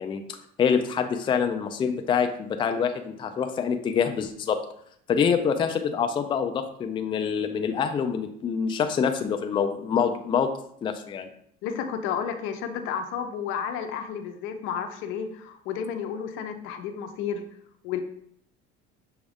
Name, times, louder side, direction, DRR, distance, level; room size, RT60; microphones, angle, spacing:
voice 1, 0.0-4.6 5.1-10.5 10.8-11.3, left 7 dB, 25° left, 6 dB, 0.4 m, -26 dB
voice 2, 11.6-17.4 17.8-18.0, left 7 dB, 75° left, 8 dB, 0.6 m, -32 dB
6.1 x 2.3 x 3.5 m, 0.68 s
cardioid pair, 115°, 21 cm